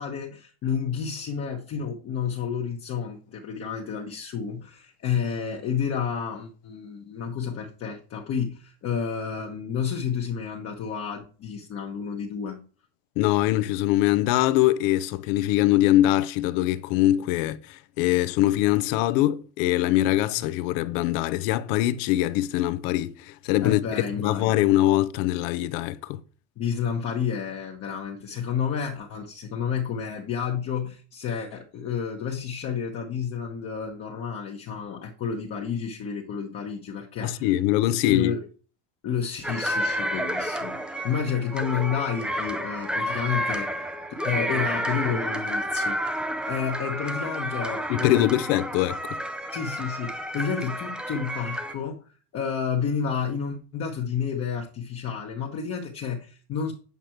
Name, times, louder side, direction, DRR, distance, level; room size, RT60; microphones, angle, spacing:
voice 1, 0.0-12.6 23.6-24.6 26.6-37.5 38.0-38.4 39.0-43.9 44.2-46.0 46.5-48.4 49.5-52.0 52.3-56.7, left 7 dB, 35° left, 1.2 m, -30 dB
voice 2, 13.2-23.8 24.2-26.2 37.2-38.3 47.9-49.2, left 15 dB, 60° left, 0.8 m, -23 dB
sound 1, 39.4-51.7, equal, ahead, 0.5 m, -30 dB
8.3 x 5.1 x 4.5 m
supercardioid pair, 145°, 44 cm